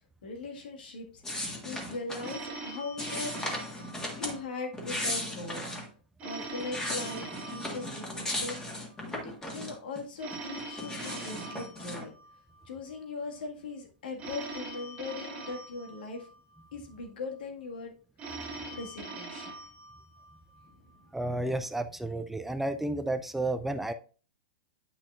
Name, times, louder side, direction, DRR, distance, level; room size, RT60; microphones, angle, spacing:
voice 1, 0.2-1.2 1.6-3.6 4.2-5.8 6.2-12.1 12.7-16.3 16.7-17.9 18.3-19.5 20.7-20.8, left 3 dB, 75° left, 2 dB, 1.8 m, -40 dB
sound 1, 1.2-2.4 3.0-4.4 4.7-5.9 6.4-10.0 10.3-12.0, left 1 dB, 15° left, 1.7 m, -36 dB
Telephone, 2.2-4.7 6.2-8.7 10.2-12.7 14.2-16.7 18.2-20.7, right 2 dB, 25° right, 1.5 m, -43 dB
voice 2, 21.1-23.9, right 2 dB, 5° right, 10 dB, 0.4 m, -31 dB
8.6 x 5.9 x 2.5 m, 0.38 s
hypercardioid pair, 130°, 5 cm